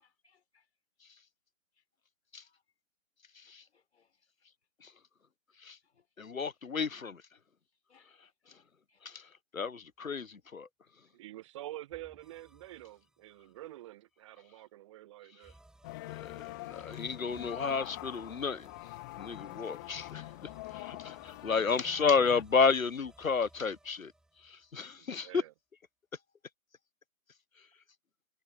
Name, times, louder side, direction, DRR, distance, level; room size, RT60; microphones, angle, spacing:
voice 1, 0.2-0.7 2.5-2.6 3.7-4.1 5.8-6.1 7.9-9.0, left 6 dB, 55° left, 5.8 m, -71 dB
voice 2, 6.2-7.2 9.0-10.7 16.1-18.7 19.1-24.1 24.4-25.4, left 5 dB, 80° left, 0.9 m, -32 dB
voice 3, 11.1-15.5 24.7-25.5, right 15 dB, 20° right, 1.6 m, -47 dB
sound 1, 11.9-13.8 15.4-25.1, right 1 dB, ahead, 4.8 m, -61 dB
sound 2, 15.8-22.4, left 21 dB, 15° left, 1.1 m, -45 dB
figure-of-eight pair, 140°, 40 cm